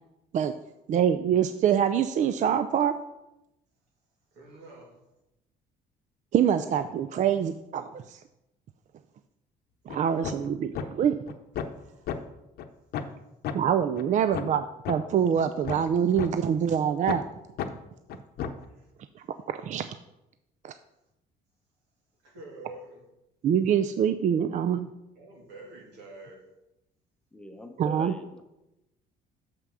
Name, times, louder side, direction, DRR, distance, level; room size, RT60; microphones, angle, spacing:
voice 1, 0.9-2.9 6.3-8.2 9.9-11.2 13.5-17.2 19.2-20.0 20.6-20.7 23.4-24.9 27.8-28.1, right 8 dB, 45° right, 10 dB, 0.4 m, -25 dB
voice 2, 4.3-5.0 11.8-12.2 14.1-14.4 18.6-18.9 19.5-19.6 22.2-23.0 25.1-26.4, right 2 dB, 90° right, -1 dB, 2.7 m, -48 dB
sound 1, 9.9-10.0 10.2-10.5 10.7-10.9 11.3-11.8 12.1-12.2 12.6-12.7 12.9-13.1 13.4-13.6 14.0-14.1 14.3-14.5 14.8-15.0 15.4-16.3 16.7-16.8 17.1-17.2 17.6-17.7 18.1-18.6, left 8 dB, 70° left, 0.8 m, -32 dB
voice 3, 27.3-28.4, left 1 dB, 5° left, 5 dB, 0.8 m, -42 dB
6.7 x 5.7 x 6.2 m, 0.92 s
cardioid pair, 110°, 17 cm